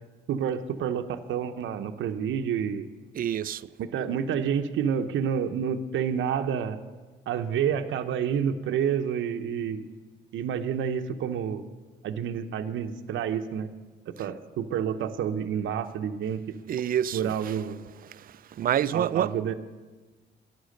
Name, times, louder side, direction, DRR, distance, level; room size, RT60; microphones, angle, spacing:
voice 1, 0.3-2.9 3.8-6.8 7.3-9.8 10.3-11.6 12.0-13.7 14.1-16.6 17.1-17.8 18.9-19.5, right 8 dB, 75° right, 0.8 m, -29 dB
voice 2, 3.1-3.7 16.7-17.5 18.1-19.3, right 10 dB, 45° right, 0.4 m, -28 dB
11.5 x 10.5 x 6.5 m
cardioid pair, 90°, 20 cm